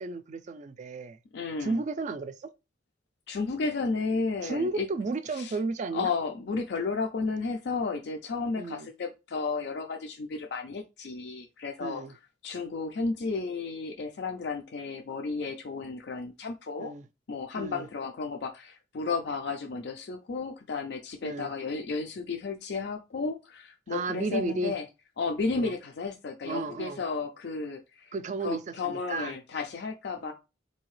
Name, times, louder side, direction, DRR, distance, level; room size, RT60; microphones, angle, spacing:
voice 1, 0.0-1.2 1.6-2.5 4.4-6.1 8.6-8.9 11.8-12.1 16.8-17.1 17.5-17.9 21.2-21.5 23.9-24.7 25.5-25.7 26.4-27.0 28.1-29.3 30.2-30.3, right 3 dB, 40° right, 0.4 m, -33 dB
voice 2, 1.3-1.8 3.3-4.9 5.3-5.5 5.9-12.0 12.4-16.9 17.3-24.8 25.2-28.1 28.4-30.3, left 4 dB, 65° left, 0.4 m, -33 dB
3.8 x 2.7 x 3.1 m
head